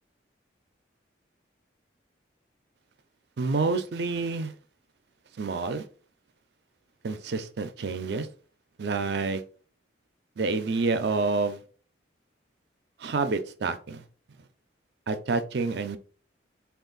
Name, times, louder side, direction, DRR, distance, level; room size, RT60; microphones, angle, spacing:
voice 1, 3.4-4.5 5.4-5.8 7.0-8.3 8.8-9.4 10.4-11.6 13.0-14.0 15.1-16.0, right 3 dB, 60° right, 0.4 m, -28 dB
3.4 x 2.4 x 3.8 m
head